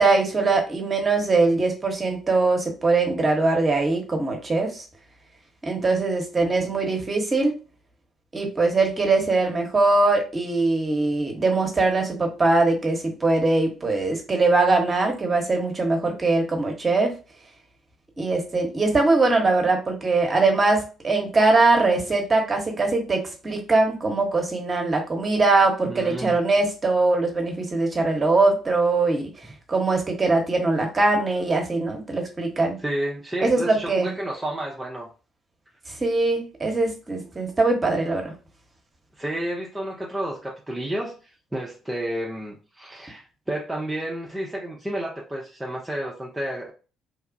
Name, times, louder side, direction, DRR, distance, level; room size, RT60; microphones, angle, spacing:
voice 1, 0.0-4.8 5.6-7.5 8.3-17.1 18.2-29.3 29.7-32.8 33.4-34.1 36.0-38.3, right 3 dB, 30° right, 2 dB, 1.0 m, -22 dB
voice 2, 25.9-26.4 32.8-35.1 39.2-46.7, right 1 dB, 10° right, -2 dB, 0.6 m, -31 dB
3.0 x 2.3 x 2.6 m, 0.34 s
hypercardioid pair, 50°, 0 cm